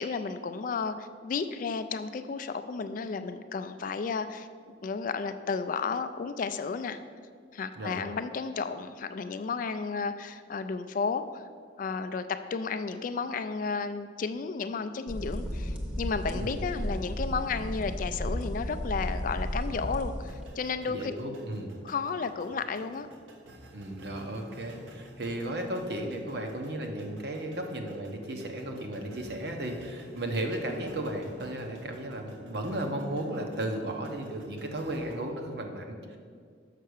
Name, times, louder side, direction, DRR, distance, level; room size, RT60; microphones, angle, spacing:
voice 1, 0.0-7.0 7.5-11.4 11.8-21.1 21.8-23.1, left 5 dB, 45° left, 10 dB, 0.3 m, -33 dB
voice 2, 7.8-8.1 16.3-16.6 20.8-21.7 23.7-36.2, right 1 dB, 55° right, 3 dB, 0.9 m, -35 dB
sound 1, 15.1-20.4, equal, 5° right, 0.8 m, -34 dB
sound 2, 20.2-35.2, equal, 85° right, 1.2 m, -51 dB
6.6 x 5.7 x 6.3 m, 2.1 s
head